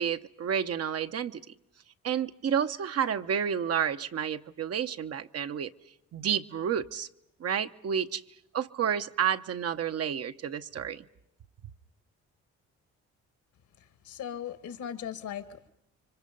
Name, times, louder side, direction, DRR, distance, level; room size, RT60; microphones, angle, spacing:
voice 1, 0.0-1.4 2.0-5.7 6.1-7.1 7.4-8.2 8.5-11.0, right 8 dB, 55° right, 1.0 m, -30 dB
voice 2, 14.1-15.7, left 9 dB, 75° left, 2.1 m, -38 dB
30.0 x 25.0 x 5.4 m
cardioid pair, 90°, 30 cm